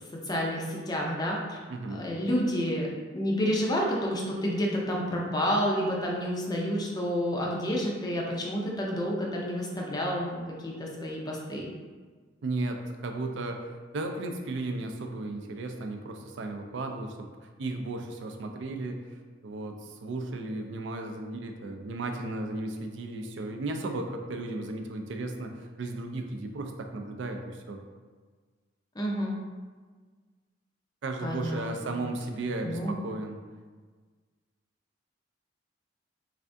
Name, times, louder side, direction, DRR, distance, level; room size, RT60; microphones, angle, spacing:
voice 1, 0.3-1.6 1.9-2.9 3.1-11.7 29.0-29.3 31.2-32.0 32.6-32.9, equal, 20° left, -2 dB, 0.4 m, -29 dB
voice 2, 1.7-2.0 12.4-13.6 13.9-17.2 17.6-19.0 19.4-27.8 31.0-33.4, right 2 dB, 70° right, 4 dB, 0.4 m, -35 dB
3.4 x 3.3 x 2.6 m, 1.5 s
head